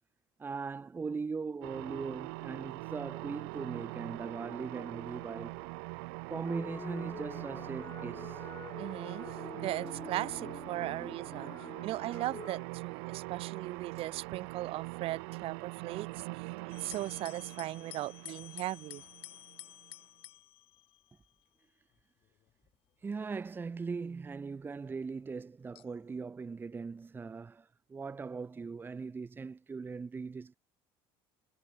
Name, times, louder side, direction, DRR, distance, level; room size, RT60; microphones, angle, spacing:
voice 1, 0.4-5.7 6.3-8.4 23.0-30.5, right 4 dB, 15° right, 1.1 m, -40 dB
sound 1, 1.6-19.9, right 33 dB, 85° right, 1.9 m, -43 dB
sound 2, 6.4-12.7, left 6 dB, 25° left, 4.7 m, -47 dB
voice 2, 8.8-11.5 11.8-19.0, right 16 dB, 55° right, 2.0 m, -38 dB
sound 3, 16.7-21.4 22.3-22.7 23.4-23.5 25.7-26.2, left 15 dB, 55° left, 3.6 m, -51 dB
cardioid pair, 130°, 12 cm